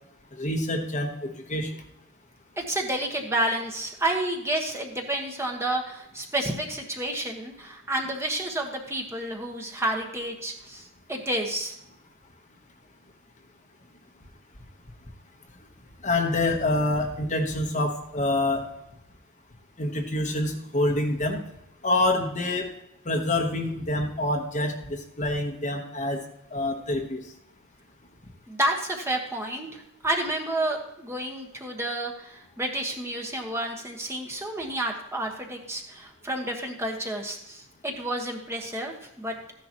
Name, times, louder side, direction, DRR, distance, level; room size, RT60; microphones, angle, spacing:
voice 1, 0.3-1.7 16.0-18.6 19.8-21.4 21.8-22.7 23.1-26.2 26.5-27.2, left 2 dB, 35° left, 3 dB, 1.2 m, -26 dB
voice 2, 2.6-11.7 28.5-39.3, right 1 dB, 10° right, 1 dB, 1.3 m, -30 dB
14.0 x 10.5 x 3.0 m, 0.82 s
head